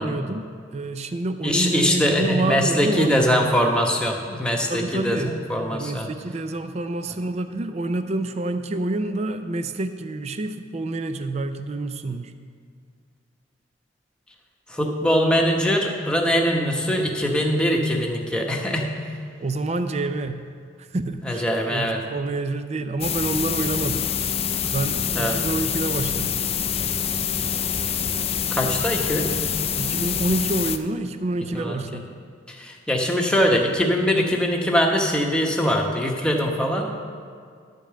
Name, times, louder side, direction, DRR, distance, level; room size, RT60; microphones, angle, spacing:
voice 1, 0.0-3.1 4.7-5.4 5.7-12.3 19.4-20.4 20.8-24.1 24.7-26.4 29.8-32.2, right 2 dB, 35° right, 9 dB, 0.4 m, -28 dB
voice 2, 1.4-6.1 14.7-18.9 21.2-22.0 25.1-25.4 28.5-29.3 31.5-31.7 32.5-36.9, equal, 5° left, 0 dB, 1.0 m, -22 dB
sound 1, 23.0-30.8, left 8 dB, 30° left, 0.4 m, -26 dB
11.5 x 5.3 x 7.5 m, 2.1 s
head